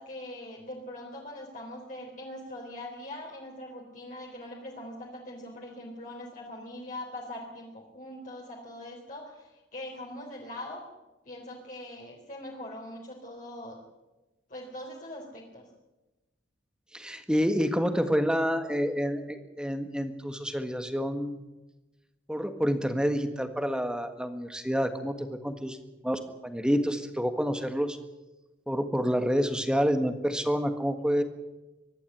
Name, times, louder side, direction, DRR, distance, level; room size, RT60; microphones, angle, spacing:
voice 1, 0.0-10.8 11.3-13.8 14.5-15.7, left 1 dB, 45° left, -2 dB, 3.6 m, -42 dB
voice 2, 16.9-21.4 22.3-25.8 26.0-28.0 28.7-31.2, equal, 5° right, 8 dB, 1.6 m, -28 dB
24.0 x 11.5 x 9.9 m, 1.1 s
head